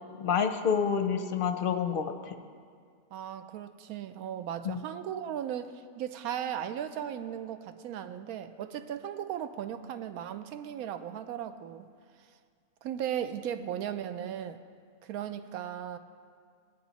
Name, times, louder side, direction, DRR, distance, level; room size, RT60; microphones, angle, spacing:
voice 1, 0.2-2.3 4.6-4.8, left 7 dB, 55° left, 7 dB, 0.6 m, -28 dB
voice 2, 3.1-11.9 12.8-14.6 15.0-16.0, right 9 dB, 85° right, 10 dB, 1.1 m, -37 dB
18.0 x 9.2 x 4.1 m, 2.1 s
omnidirectional pair, 1.5 m